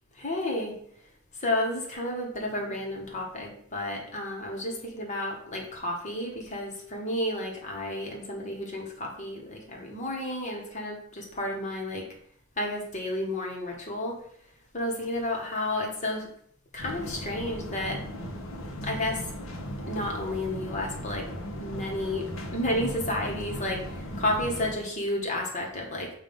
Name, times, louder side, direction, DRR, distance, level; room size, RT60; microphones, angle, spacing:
voice 1, 0.2-0.8 1.4-12.0 12.6-14.1 14.7-16.3 16.7-18.0 18.8-19.3 19.9-21.2 21.6-26.1, left 1 dB, 35° left, -1 dB, 1.4 m, -31 dB
sound 1, 16.8-24.7, equal, 75° left, 1.1 m, -37 dB
7.4 x 2.7 x 5.3 m, 0.65 s
head